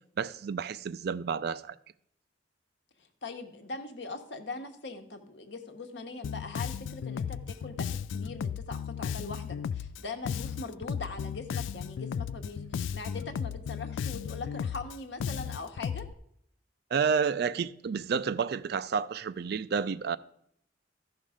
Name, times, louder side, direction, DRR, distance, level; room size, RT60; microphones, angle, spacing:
voice 1, 0.2-1.8 16.9-20.2, right 6 dB, 55° right, 0.4 m, -30 dB
voice 2, 3.0-16.1, left 3 dB, 65° left, 1.1 m, -41 dB
Bass guitar, 6.2-16.1, left 7 dB, 80° left, 0.3 m, -35 dB
14.0 x 5.6 x 4.9 m
head